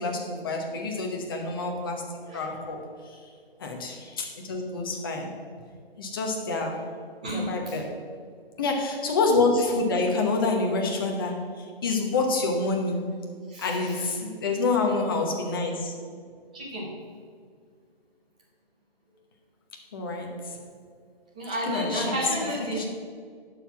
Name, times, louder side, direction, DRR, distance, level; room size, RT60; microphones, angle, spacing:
voice 1, 0.0-3.2 3.6-5.3 6.0-7.0 7.3-8.0 8.6-13.1 13.6-16.0 19.9-20.6 21.7-22.1 22.7-22.9, left 3 dB, 20° left, 1 dB, 0.9 m, -27 dB
voice 2, 2.3-2.7 7.2-7.8 13.5-14.1 16.5-16.9 21.3-22.9, equal, 10° right, -4 dB, 0.6 m, -32 dB
11.0 x 4.7 x 5.9 m, 2.1 s
hypercardioid pair, 160°, 31 cm